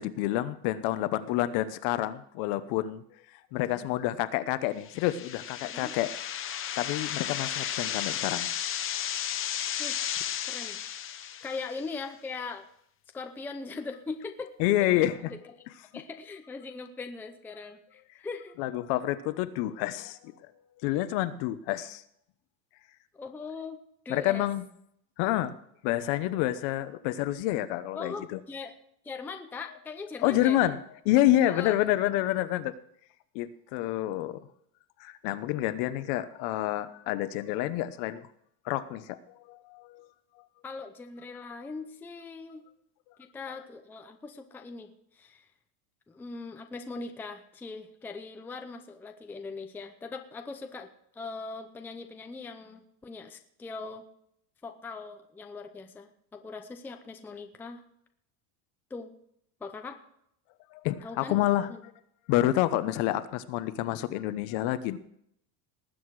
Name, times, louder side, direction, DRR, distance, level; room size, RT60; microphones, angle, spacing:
voice 1, 0.0-3.0 3.5-6.1 6.8-8.5 14.6-15.3 18.6-20.3 20.8-22.0 24.1-24.6 25.2-25.6 25.8-28.4 30.2-30.8 31.0-32.7 33.3-34.5 35.0-38.2 38.6-39.2 39.5-40.1 60.7-61.9 62.3-65.0, left 14 dB, 55° left, 13 dB, 1.0 m, -28 dB
sound 1, 4.8-11.8, left 10 dB, 25° left, 0.8 m, -34 dB
voice 2, 10.5-10.8 11.4-12.7 13.1-14.5 14.9-15.1 15.9-18.5 23.1-23.8 24.0-24.4 27.9-28.7 29.0-30.6 31.4-31.8 40.6-42.6 43.2-45.4 46.1-50.9 51.2-54.1 54.6-57.8 58.9-59.1 59.6-60.0 61.0-61.8, left 4 dB, 5° left, 5 dB, 0.5 m, -40 dB
19.5 x 8.0 x 4.7 m, 0.71 s
cardioid pair, 155°, 49 cm